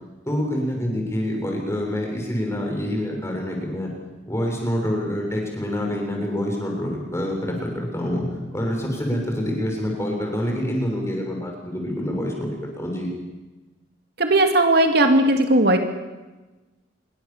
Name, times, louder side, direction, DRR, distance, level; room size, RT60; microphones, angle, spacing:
voice 1, 0.3-3.9 4.3-8.2 8.5-12.5 12.8-13.1, equal, 15° left, 1 dB, 6.9 m, -26 dB
voice 2, 14.2-15.8, right 1 dB, 55° right, 5 dB, 2.4 m, -17 dB
26.5 x 23.0 x 7.4 m, 1.2 s
head